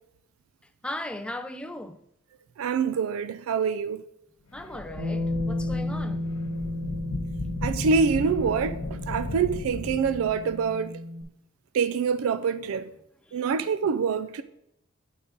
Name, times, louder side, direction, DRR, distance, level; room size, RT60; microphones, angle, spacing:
voice 1, 0.8-2.0 4.5-6.3 13.3-13.4, left 1 dB, 5° left, 0.3 m, -37 dB
voice 2, 2.6-4.0 7.6-11.0 11.7-12.9 13.3-14.4, right 5 dB, 80° right, 0.3 m, -26 dB
sound 1, 4.5-10.7, left 2 dB, 85° left, 0.7 m, -36 dB
Bass guitar, 5.0-11.2, left 1 dB, 55° right, 1.6 m, -33 dB
8.4 x 4.0 x 5.1 m
head